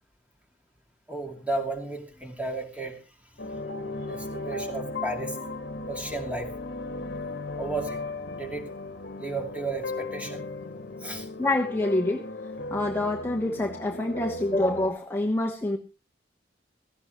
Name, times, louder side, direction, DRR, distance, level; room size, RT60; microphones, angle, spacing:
voice 1, 1.1-2.9 4.1-5.3 5.9-6.5 7.6-8.0 8.4-8.7 9.2-10.5 11.0-11.2, right 2 dB, 10° right, 3 dB, 2.4 m, -33 dB
sound 1, 3.4-14.9, left 2 dB, 65° left, 1.3 m, -36 dB
voice 2, 11.4-12.3 12.7-15.8, left 2 dB, 15° left, 0 dB, 1.1 m, -26 dB
17.0 x 14.5 x 3.0 m, 0.31 s
head